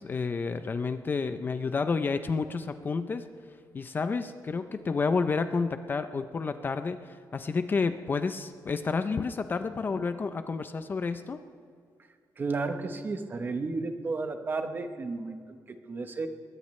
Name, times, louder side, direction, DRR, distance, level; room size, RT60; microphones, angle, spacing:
voice 1, 0.0-3.3 3.7-11.4, left 4 dB, 30° left, 10 dB, 0.5 m, -30 dB
voice 2, 12.4-16.3, right 3 dB, 30° right, 7 dB, 0.9 m, -33 dB
22.0 x 19.0 x 3.2 m, 2.2 s
wide cardioid pair, 170°, 7 cm